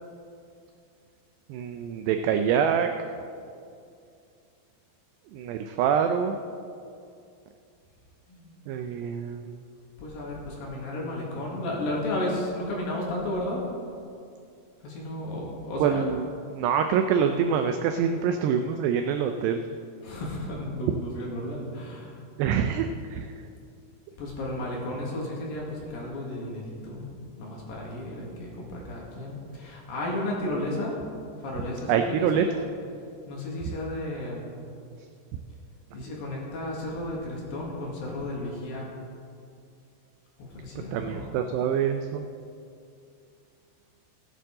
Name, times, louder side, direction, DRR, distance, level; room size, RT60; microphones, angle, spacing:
voice 1, 1.5-2.9 5.3-6.4 8.7-9.5 15.8-19.6 22.4-23.3 31.9-32.7 40.9-42.3, right 7 dB, 85° right, 6 dB, 2.4 m, -25 dB
voice 2, 8.3-8.7 10.0-13.6 14.8-16.0 20.0-22.2 24.2-27.1 27.4-30.9 31.4-32.6 33.3-34.5 35.9-38.9 40.4-41.2, left 1 dB, 60° left, -3 dB, 3.1 m, -33 dB
17.5 x 9.1 x 3.8 m, 2.4 s
omnidirectional pair, 5.4 m